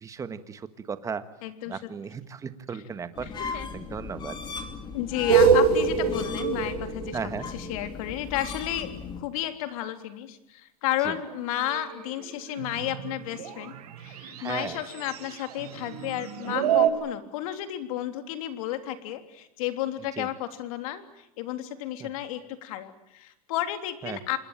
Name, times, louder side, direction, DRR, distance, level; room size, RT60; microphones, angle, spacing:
voice 1, 0.0-1.2 1.7-4.4 7.1-7.5 11.0-11.1 14.4-14.8 20.2-20.3 22.0-22.1 24.0-24.2, right 6 dB, 15° right, 11 dB, 1.6 m, -36 dB
voice 2, 1.4-1.9 2.7-2.8 3.2-3.7 4.9-7.2 7.5-8.9 9.2-24.4, left 12 dB, 65° left, 9 dB, 3.4 m, -32 dB
sound 1, 3.2-9.2, left 5 dB, 25° left, 2.9 m, -37 dB
sound 2, 5.3-8.1 11.1-16.9, right 7 dB, 85° right, 6.0 m, -26 dB
26.5 x 21.5 x 9.1 m, 0.82 s
supercardioid pair, 140°, 19 cm